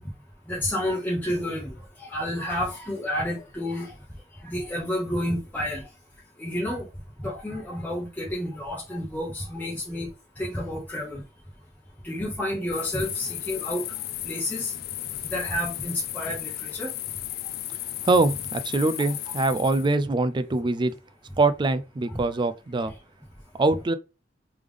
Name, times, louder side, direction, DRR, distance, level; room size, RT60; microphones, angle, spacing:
voice 1, 0.5-3.9 4.4-5.9 6.4-6.8 7.2-10.1 10.4-11.2 12.0-13.9 14.2-14.7 15.2-16.9 22.1-22.2 22.8-22.9, left 1 dB, 10° left, 0.9 m, -30 dB
sound 1, 12.7-20.0, left 14 dB, 55° left, 0.3 m, -35 dB
voice 2, 18.0-20.9 21.4-22.9 23.5-23.9, right 2 dB, 25° right, 0.3 m, -23 dB
3.4 x 3.3 x 3.5 m
head